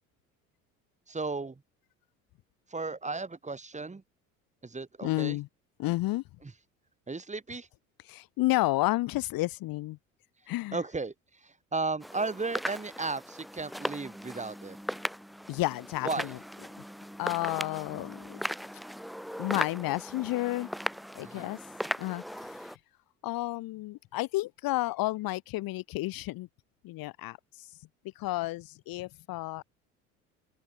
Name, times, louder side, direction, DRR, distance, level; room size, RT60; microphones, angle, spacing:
voice 1, 1.1-1.6 2.7-4.0 4.6-5.4 6.4-6.5 7.1-7.7 10.7-14.8 16.0-16.3 21.2-21.5, right 3 dB, 15° right, 3.4 m, -35 dB
voice 2, 5.0-5.5 5.8-6.2 8.1-10.0 10.5-10.8 15.5-16.4 17.2-18.4 19.4-20.7 21.2-21.6 22.0-22.8 23.2-26.5 26.8-27.7 28.2-29.6, left 18 dB, 55° left, 2.2 m, -31 dB
sound 1, 12.0-22.8, equal, ahead, 2.4 m, -38 dB
open air
hypercardioid pair, 65°, 42 cm